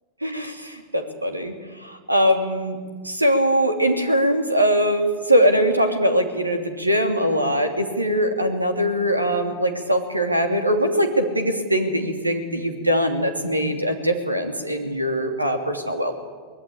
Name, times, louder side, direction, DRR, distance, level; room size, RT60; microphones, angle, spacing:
voice 1, 0.2-1.5 1.8-2.8 3.0-16.1, equal, 85° right, 6 dB, 2.8 m, -21 dB
23.5 x 20.5 x 8.6 m, 1.5 s
figure-of-eight pair, 90°, 0 cm